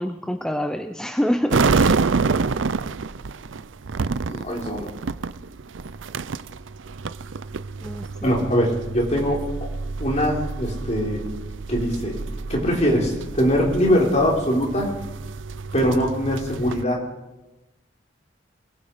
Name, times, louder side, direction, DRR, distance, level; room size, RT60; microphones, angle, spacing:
voice 1, 0.0-1.9 7.8-8.5, equal, 5° left, 7 dB, 0.7 m, -27 dB
sound 1, 1.5-16.8, right 4 dB, 90° right, 0.6 m, -28 dB
voice 2, 4.3-4.9 8.2-9.4 10.0-11.2 11.7-12.2 12.5-14.9 15.7-17.0, equal, 35° left, -1 dB, 5.0 m, -22 dB
24.0 x 21.5 x 5.1 m, 1.1 s
head